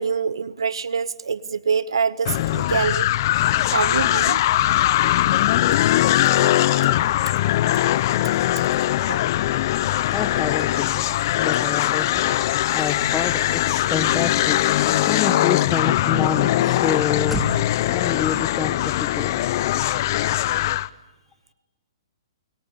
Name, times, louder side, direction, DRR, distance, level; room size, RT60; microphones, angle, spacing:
voice 1, 0.0-3.1 3.7-4.4 9.1-9.2, right 6 dB, 80° right, 18 dB, 0.9 m, -25 dB
sound 1, 2.2-20.9, left 14 dB, 50° left, 0.9 m, -21 dB
Car / Slam, 9.5-17.8, right 1 dB, ahead, 3.4 m, -40 dB
voice 2, 10.1-11.0 11.4-17.4 17.9-19.3 20.8-20.9, left 7 dB, 15° left, 9 dB, 1.5 m, -28 dB
30.0 x 23.5 x 8.6 m, 1.1 s
hypercardioid pair, 135°, 3 cm